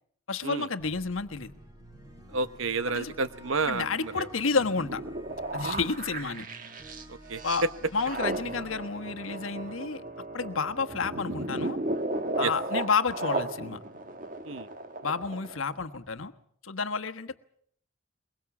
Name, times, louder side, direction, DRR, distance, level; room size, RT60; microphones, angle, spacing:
voice 1, 0.3-1.5 2.9-3.1 3.7-5.0 5.5-6.5 7.4-7.6 7.9-10.0 10.3-11.8 12.4-13.8 15.0-16.3 16.6-17.4, left 4 dB, 70° left, 7 dB, 1.3 m, -30 dB
sound 1, 0.8-11.0, equal, 20° right, 3.6 m, -51 dB
voice 2, 2.3-4.3 5.6-5.8 7.1-7.7 12.4-12.5 14.4-14.7, right 3 dB, 70° right, 12 dB, 1.1 m, -30 dB
sound 2, 4.3-15.7 16.1-16.2, right 2 dB, 40° right, 1.4 m, -35 dB
22.0 x 22.0 x 7.2 m, 0.65 s
head